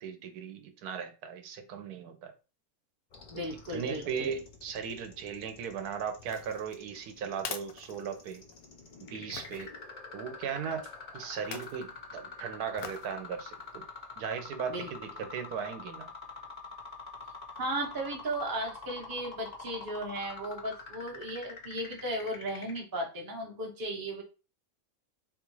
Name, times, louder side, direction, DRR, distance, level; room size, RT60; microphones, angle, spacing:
voice 1, 0.0-2.3 3.7-8.4 9.0-9.7 10.1-10.8 11.1-13.8 14.2-16.1, right 7 dB, 85° right, 1.1 m, -37 dB
sound 1, 3.1-22.8, left 4 dB, 55° left, 0.4 m, -46 dB
voice 2, 3.3-4.3 14.7-14.9 17.6-24.2, right 1 dB, 25° right, 0.5 m, -36 dB
sound 2, 6.2-8.6 9.3-9.7 11.3-11.8 12.8-13.1 13.6-13.7, left 7 dB, 70° left, 0.9 m, -43 dB
3.7 x 2.4 x 3.0 m
omnidirectional pair, 1.6 m